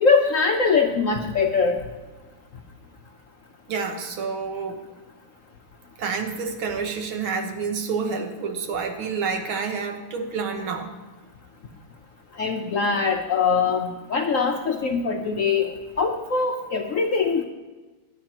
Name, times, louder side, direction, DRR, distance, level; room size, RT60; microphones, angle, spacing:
voice 1, 0.0-1.8 12.4-17.4, left 5 dB, 60° left, 3 dB, 0.8 m, -22 dB
voice 2, 3.7-4.8 6.0-10.9, right 5 dB, 80° right, 5 dB, 2.1 m, -28 dB
18.0 x 11.0 x 3.0 m, 1.2 s
omnidirectional pair, 2.2 m